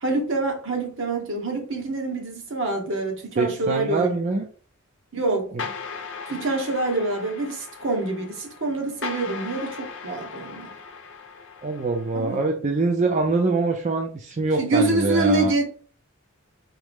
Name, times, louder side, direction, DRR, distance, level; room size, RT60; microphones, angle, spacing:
voice 1, 0.0-4.2 5.1-5.5 6.3-10.7 12.1-12.4 14.5-15.6, right 2 dB, 60° right, 1.2 m, -26 dB
voice 2, 3.4-4.4 5.5-5.6 11.6-15.5, right 3 dB, 35° right, 0.5 m, -24 dB
sound 1, 5.6-12.4, left 5 dB, 60° left, 0.7 m, -38 dB
4.7 x 3.1 x 3.5 m
head